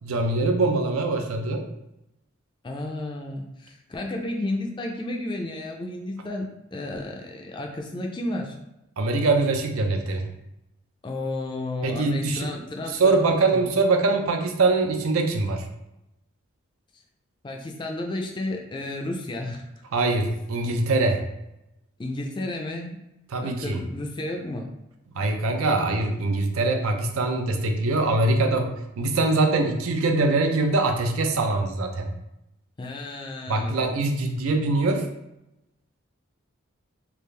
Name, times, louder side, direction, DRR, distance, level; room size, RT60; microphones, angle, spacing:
voice 1, 0.0-1.6 9.0-10.3 11.8-12.5 12.9-15.7 19.9-21.2 23.3-23.8 25.1-32.1 33.5-35.1, right 3 dB, 85° right, 4 dB, 0.5 m, -23 dB
voice 2, 2.6-8.6 11.0-13.2 13.5-13.6 17.4-19.6 22.0-23.0 23.4-24.7 32.8-33.9, left 2 dB, 20° left, 2 dB, 0.3 m, -32 dB
3.5 x 2.4 x 3.2 m, 0.88 s
head